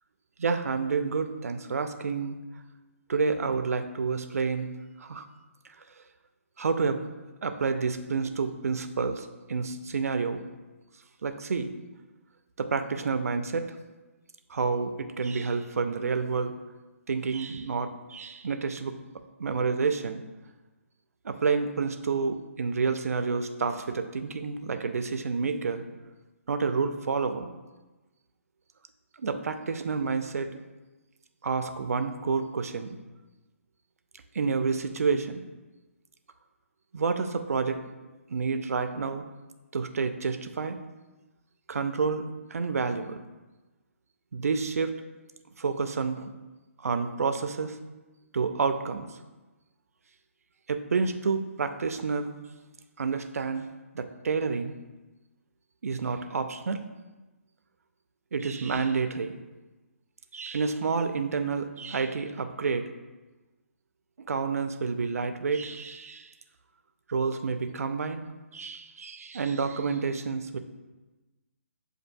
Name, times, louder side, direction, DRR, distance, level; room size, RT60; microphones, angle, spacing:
voice 1, 0.4-2.4 3.1-4.7 5.0-5.2 6.6-7.0 7.4-10.4 11.2-11.7 12.6-13.7 14.5-16.5 17.1-18.9 19.4-20.2 21.2-25.8 26.5-27.5 29.2-30.6 31.4-33.0 34.3-35.4 36.9-37.8 38.3-39.2 39.7-40.8 41.7-43.2 44.3-44.9 45.6-46.3 46.8-47.8 48.3-49.1 50.7-52.3 53.0-53.7 53.9-54.7 55.8-56.8 58.3-59.3 60.3-62.8 64.3-66.3 67.1-68.3 68.5-70.6, right 5 dB, 80° right, 8 dB, 0.4 m, -29 dB
7.4 x 2.6 x 2.6 m, 1.2 s
hypercardioid pair, 155°, 8 cm